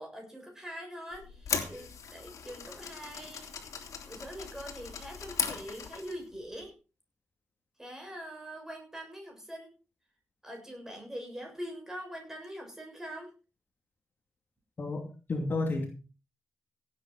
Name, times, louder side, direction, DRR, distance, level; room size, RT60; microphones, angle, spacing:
voice 1, 0.0-3.5 4.1-6.7 7.8-9.7 10.4-13.3, equal, 10° right, 2 dB, 6.9 m, -43 dB
sound 1, 1.1-6.3, left 6 dB, 75° left, 3.1 m, -38 dB
voice 2, 14.8-15.9, left 2 dB, 35° left, 3 dB, 2.7 m, -31 dB
17.0 x 8.9 x 4.9 m, 0.33 s
wide cardioid pair, 145°, 5 cm